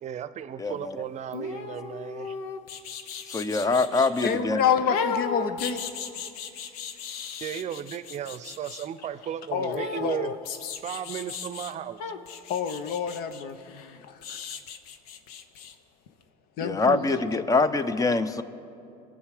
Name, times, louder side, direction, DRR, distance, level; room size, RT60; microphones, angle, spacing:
voice 1, 0.0-2.4 7.4-10.3 10.8-12.0, right 9 dB, 40° right, 14 dB, 0.7 m, -35 dB
voice 2, 0.6-1.0 3.3-4.6 16.6-18.4, left 3 dB, 20° left, 13 dB, 0.7 m, -24 dB
sound 1, 1.3-4.4 4.9-8.9 9.7-11.7 12.0-15.7 16.1-16.2, left 6 dB, 80° left, 0.9 m, -36 dB
voice 3, 4.2-5.8 9.5-10.4 12.5-14.4 16.6-17.0, left 7 dB, 55° left, 10 dB, 0.9 m, -28 dB
21.5 x 7.5 x 5.0 m, 2.6 s
supercardioid pair, 95°, 19 cm